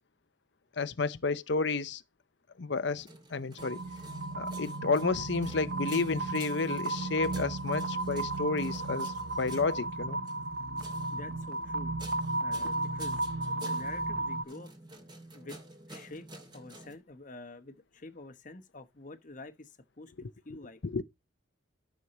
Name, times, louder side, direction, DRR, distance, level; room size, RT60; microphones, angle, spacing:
voice 1, 0.8-2.0 2.6-3.8 4.3-10.2 20.8-21.0, left 4 dB, 60° left, 0.7 m, -31 dB
sound 1, 2.8-16.9, right 2 dB, 20° right, 2.6 m, -50 dB
sound 2, 3.6-14.4, right 2 dB, 50° right, 0.8 m, -34 dB
voice 2, 11.1-11.9 12.4-13.2 13.5-14.7 15.3-15.6 15.9-16.3 16.5-20.8, left 2 dB, 40° left, 1.1 m, -47 dB
13.0 x 6.4 x 4.2 m
head